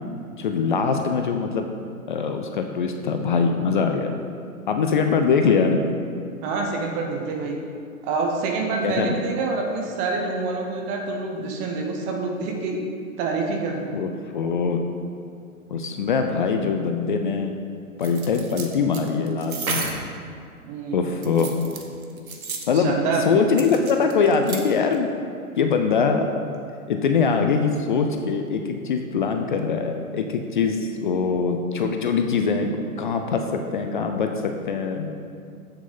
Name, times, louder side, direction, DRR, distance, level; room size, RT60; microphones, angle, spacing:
voice 1, 0.4-1.7 2.1-4.1 4.7-5.8 8.8-9.1 13.9-14.9 15.7-17.6 18.0-19.9 20.9-21.5 22.7-22.9 23.2-25.1 25.6-26.2 26.9-32.7 33.0-35.1, left 5 dB, 35° left, 5 dB, 0.5 m, -23 dB
voice 2, 6.4-7.6 8.0-12.8 13.2-13.9 20.6-21.3 22.7-23.2, right 3 dB, 15° right, 1 dB, 0.7 m, -27 dB
sound 1, 18.0-20.1 21.1-22.8 23.6-24.6 24.9-25.0, right 4 dB, 70° right, 1.4 m, -32 dB
7.8 x 6.9 x 5.5 m, 2.3 s
figure-of-eight pair, 125°, 44 cm